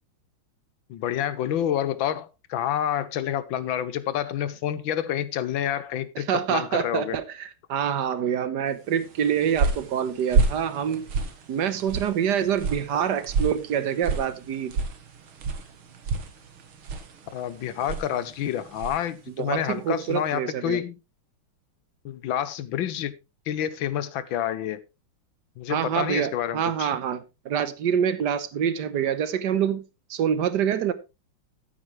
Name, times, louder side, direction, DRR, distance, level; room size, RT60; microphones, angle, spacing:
voice 1, 0.9-7.2 17.3-21.0 22.0-23.1 23.5-24.8 25.6-26.9, left 10 dB, 75° left, 1.5 m, -28 dB
voice 2, 6.1-11.1 11.5-14.8 19.4-20.8 25.7-29.8 30.1-30.9, right 8 dB, 60° right, 1.4 m, -26 dB
sound 1, 9.0-19.1, right 4 dB, 85° right, 2.4 m, -30 dB
13.5 x 8.9 x 3.2 m
omnidirectional pair, 2.3 m